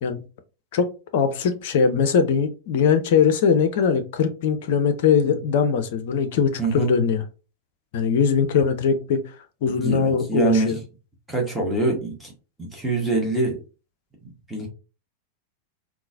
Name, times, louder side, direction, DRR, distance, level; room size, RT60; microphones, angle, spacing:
voice 1, 1.1-7.2 7.9-9.2 9.6-10.8, left 6 dB, 50° left, 0.5 m, -21 dB
voice 2, 6.6-6.9 9.7-10.8 11.3-12.3 12.6-13.6 14.5-14.7, right 3 dB, 5° right, 1.2 m, -24 dB
3.7 x 2.4 x 2.6 m
figure-of-eight pair, 90°, 0 cm